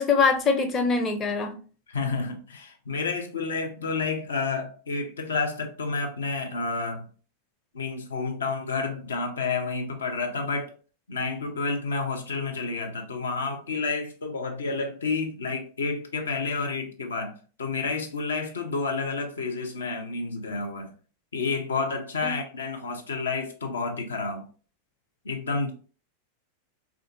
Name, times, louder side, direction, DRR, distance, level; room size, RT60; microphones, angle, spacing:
voice 1, 0.0-1.6 22.2-22.4, left 4 dB, 25° left, 0.6 m, -23 dB
voice 2, 1.9-7.1 7.7-10.7 11.1-17.3 17.6-20.9 21.3-24.4 25.2-25.7, left 4 dB, 70° left, 0.6 m, -30 dB
3.5 x 2.5 x 2.6 m
figure-of-eight pair, 90°, 0 cm